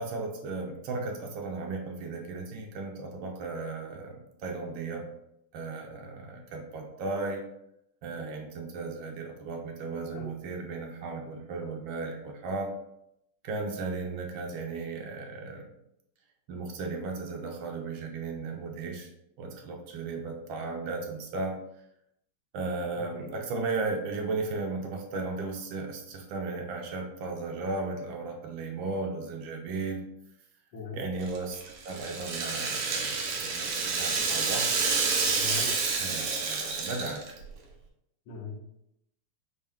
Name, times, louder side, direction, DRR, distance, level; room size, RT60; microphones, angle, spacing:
voice 1, 0.0-5.1 5.5-7.4 8.0-12.7 13.4-15.7 16.5-19.1 19.4-21.5 22.5-30.0 30.9-34.7 36.0-37.4, right 3 dB, 70° right, 2 dB, 1.4 m, -35 dB
voice 2, 22.9-23.3 30.7-31.0 35.4-35.7 38.3-38.6, left 5 dB, 75° left, -4 dB, 2.0 m, -40 dB
Rattle (instrument), 31.2-37.4, right 4 dB, 90° right, 1.8 m, -29 dB
5.5 x 2.7 x 3.5 m, 0.79 s
omnidirectional pair, 2.4 m